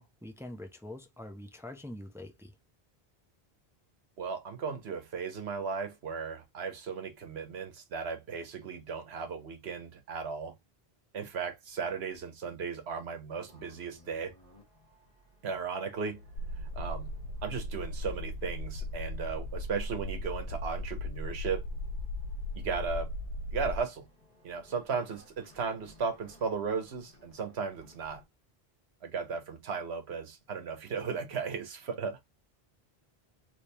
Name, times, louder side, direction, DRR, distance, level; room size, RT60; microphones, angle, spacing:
voice 1, 0.0-2.5, left 1 dB, 5° right, 0.6 m, -44 dB
voice 2, 4.2-10.5 11.1-14.3 15.4-16.2 16.7-17.1 17.4-21.6 22.5-23.1 23.5-24.1 24.4-28.2 29.0-32.3, right 5 dB, 85° right, 1.3 m, -36 dB
sound 1, 13.5-28.2, right 4 dB, 40° left, 1.8 m, -53 dB
sound 2, 16.4-23.8, left 1 dB, 80° left, 0.8 m, -37 dB
3.4 x 3.3 x 2.8 m
omnidirectional pair, 1.0 m